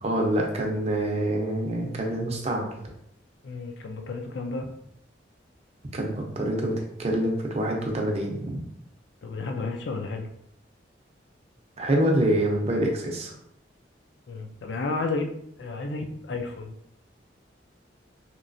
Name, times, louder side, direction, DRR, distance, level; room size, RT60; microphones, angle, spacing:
voice 1, 0.0-2.7 5.9-8.6 11.8-13.3, right 1 dB, 35° right, 0 dB, 0.6 m, -26 dB
voice 2, 3.4-4.7 9.2-10.3 14.3-16.7, left 3 dB, 65° left, 4 dB, 0.4 m, -32 dB
3.1 x 3.0 x 2.6 m, 0.73 s
head